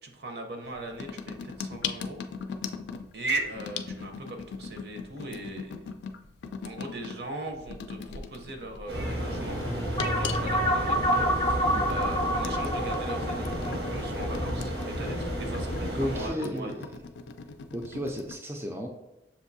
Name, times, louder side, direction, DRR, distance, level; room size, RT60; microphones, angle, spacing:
voice 1, 0.0-2.2 3.1-5.8 6.6-9.6 10.0-16.7, right 2 dB, 65° right, 4 dB, 0.7 m, -38 dB
sound 1, 0.6-18.3, left 5 dB, 80° left, 0.3 m, -40 dB
sound 2, 8.9-16.3, equal, 90° right, 1.2 m, -32 dB
sound 3, 10.0-14.8, equal, 25° left, 0.7 m, -28 dB
voice 2, 16.0-16.9 17.7-18.9, equal, 15° right, 1 dB, 0.3 m, -33 dB
6.8 x 2.6 x 2.6 m, 0.95 s
head